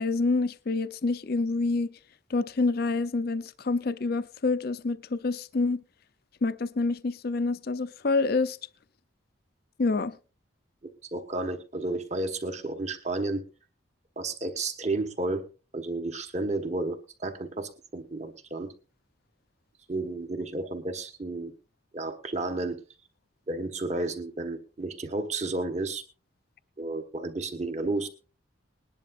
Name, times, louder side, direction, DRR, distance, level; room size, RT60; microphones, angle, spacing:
voice 1, 0.0-1.9 2.3-5.8 6.4-8.6 9.8-10.2, left 3 dB, 50° left, 0.5 m, -27 dB
voice 2, 10.8-13.4 14.2-15.4 15.7-18.7 19.9-21.5 21.9-22.8 23.5-26.0 26.8-28.1, right 2 dB, 35° right, 1.3 m, -32 dB
20.5 x 10.5 x 2.5 m
head